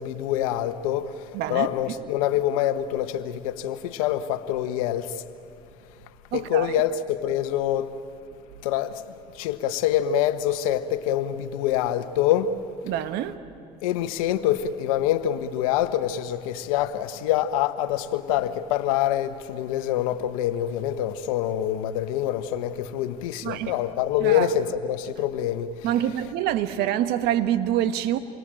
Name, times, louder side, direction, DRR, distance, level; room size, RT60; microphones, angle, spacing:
voice 1, 0.0-5.2 6.3-7.9 8.6-9.0 9.3-12.6 13.8-25.9, left 11 dB, 85° left, 1.2 m, -25 dB
voice 2, 1.3-1.7 6.3-6.7 12.8-13.4 23.4-23.8 24.2-24.5 25.8-28.2, right 11 dB, 65° right, 1.5 m, -26 dB
28.5 x 22.5 x 9.0 m
supercardioid pair, 80°, 18 cm